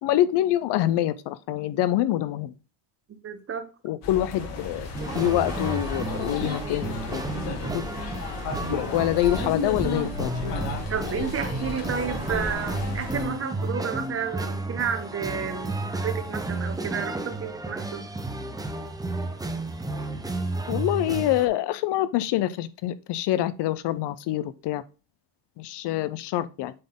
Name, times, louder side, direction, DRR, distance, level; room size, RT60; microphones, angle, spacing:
voice 1, 0.0-2.5 3.8-4.9 5.1-7.2 7.7-7.9 8.7-10.3 20.7-24.8 25.6-26.7, left 13 dB, 60° left, 0.6 m, -25 dB
voice 2, 3.2-3.6 10.9-18.0, right 7 dB, 30° right, 1.0 m, -31 dB
sound 1, 4.0-13.3, left 3 dB, 80° left, 3.0 m, -33 dB
sound 2, 4.9-21.5, right 2 dB, 10° right, 0.6 m, -32 dB
7.7 x 3.9 x 3.7 m
cardioid pair, 140°, 47 cm